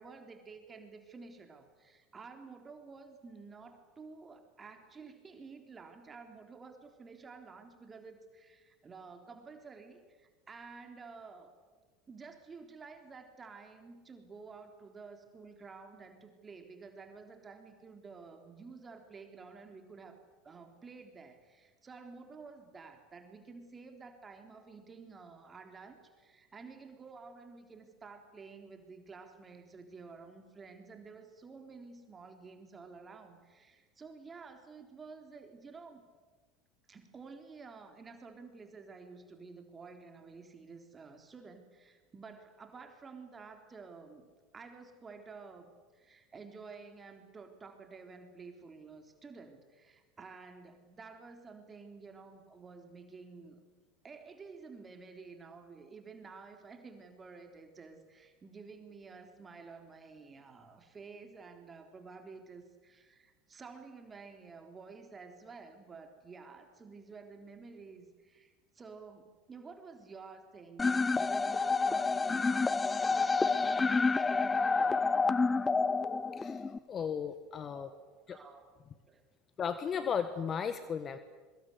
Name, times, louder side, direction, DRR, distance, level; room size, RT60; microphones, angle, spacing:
voice 1, 0.0-11.5 12.1-20.2 20.4-36.0 36.9-44.3 44.5-53.6 54.0-73.3 73.6-75.1 77.7-78.7 79.1-79.2, right 4 dB, 25° right, 5 dB, 3.7 m, -51 dB
sound 1, 70.8-76.8, left 4 dB, 20° left, 0.9 m, -29 dB
voice 2, 76.9-77.9 78.3-78.4 79.6-81.2, left 7 dB, 35° left, 11 dB, 1.5 m, -35 dB
24.0 x 23.5 x 8.0 m, 1.4 s
hypercardioid pair, 75°, 0 cm